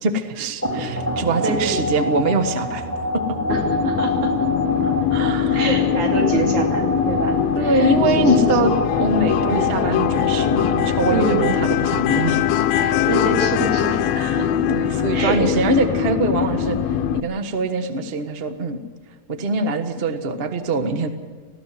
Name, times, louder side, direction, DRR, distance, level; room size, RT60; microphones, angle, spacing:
voice 1, 0.0-2.8 3.1-3.2 4.8-5.6 6.2-6.6 7.5-12.4 14.1-18.8 19.3-21.1, right 2 dB, 85° right, 8 dB, 0.5 m, -23 dB
sound 1, 0.6-12.0, equal, 5° right, 2.7 m, -27 dB
voice 2, 1.4-1.8 3.5-4.3 5.5-8.7 9.3-9.8 11.1-11.5 12.8-14.0 14.4-14.5 15.1-15.5, right 3 dB, 70° right, 2 dB, 4.1 m, -26 dB
sound 2, 3.5-17.2, left 9 dB, 70° left, 1.7 m, -21 dB
19.5 x 15.5 x 9.4 m, 1.5 s
omnidirectional pair, 3.6 m